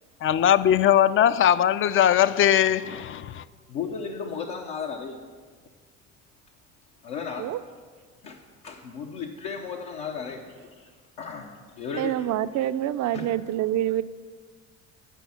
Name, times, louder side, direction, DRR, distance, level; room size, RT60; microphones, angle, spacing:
voice 1, 0.2-3.4, left 10 dB, 35° left, 0.4 m, -20 dB
voice 2, 3.7-5.2 7.0-7.5 8.2-8.4 8.6-10.4 10.8-10.9 11.2-11.5 11.8-12.7 13.1-13.3, left 6 dB, 75° left, 0.9 m, -34 dB
voice 3, 12.0-14.0, right 12 dB, 50° right, 0.5 m, -26 dB
9.2 x 5.3 x 7.1 m
hypercardioid pair, 65°, 38 cm